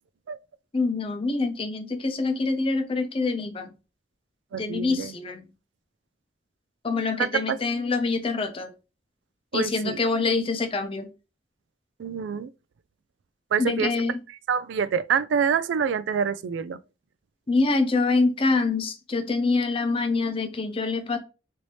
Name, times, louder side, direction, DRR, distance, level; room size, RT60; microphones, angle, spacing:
voice 1, 0.7-3.7 4.6-5.4 6.8-8.7 9.5-11.1 13.6-14.2 17.5-21.2, left 3 dB, 30° left, 0.5 m, -25 dB
voice 2, 4.5-5.1 7.3-7.6 9.5-10.0 12.0-12.5 13.5-13.9 14.5-16.8, right 7 dB, 85° right, 0.3 m, -26 dB
3.2 x 2.7 x 2.9 m
head